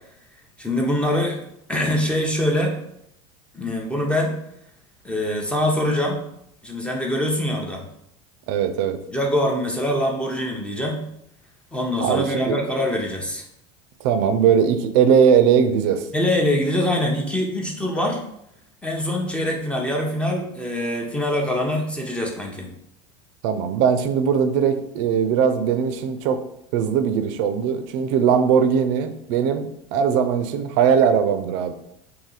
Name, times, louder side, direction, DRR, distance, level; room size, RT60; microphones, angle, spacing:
voice 1, 0.6-1.4 1.7-2.8 3.5-4.4 5.0-6.2 6.6-7.8 9.1-11.1 11.7-13.4 16.1-18.2 18.8-22.7, left 1 dB, 5° left, 0 dB, 0.7 m, -24 dB
voice 2, 8.5-9.0 12.0-12.6 14.0-16.1 23.4-26.4 26.7-31.7, right 7 dB, 65° right, 8 dB, 0.5 m, -20 dB
2.8 x 2.7 x 3.9 m, 0.75 s
supercardioid pair, 110°, 16 cm